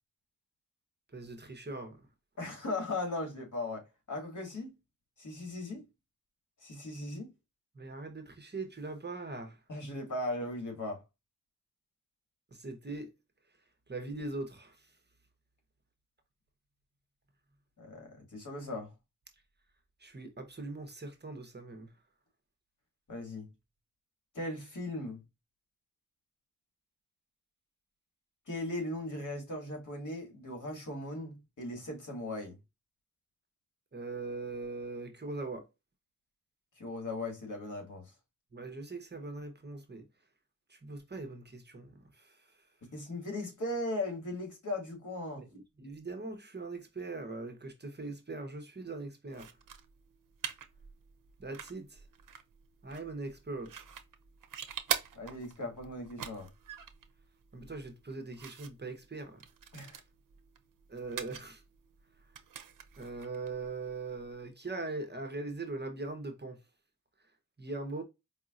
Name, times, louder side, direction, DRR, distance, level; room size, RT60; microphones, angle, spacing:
voice 1, 1.1-2.0 7.7-9.6 12.5-13.1 13.9-14.9 20.0-21.9 33.9-35.7 38.5-40.0 40.7-42.6 45.4-49.6 51.4-52.0 52.8-53.8 57.5-59.4 60.9-61.6 63.0-66.6 67.6-68.0, right 3 dB, 30° right, 1.0 m, -41 dB
voice 2, 2.4-4.7 5.2-5.8 6.6-7.3 9.7-11.0 17.8-18.9 23.1-23.5 24.3-25.2 28.5-32.6 36.8-38.1 42.9-45.5 55.1-56.5 59.7-60.0, left 2 dB, 65° left, 2.1 m, -38 dB
sound 1, 49.3-64.5, right 8 dB, 70° right, 0.7 m, -44 dB
4.9 x 2.7 x 2.5 m
wide cardioid pair, 90°, 33 cm